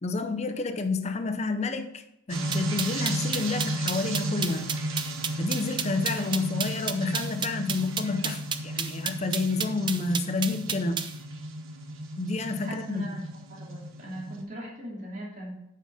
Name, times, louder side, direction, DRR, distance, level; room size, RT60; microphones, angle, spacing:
voice 1, 0.0-4.7 5.4-11.0 12.2-13.0, left 3 dB, 35° left, 8 dB, 0.6 m, -29 dB
sound 1, 2.3-14.4, right 1 dB, 90° right, 1.3 m, -34 dB
sound 2, 2.5-11.1, right 7 dB, 25° right, 0.5 m, -31 dB
voice 2, 12.6-13.2 13.5-15.5, right 1 dB, 40° right, -5 dB, 2.7 m, -39 dB
8.9 x 5.6 x 4.9 m, 0.83 s
head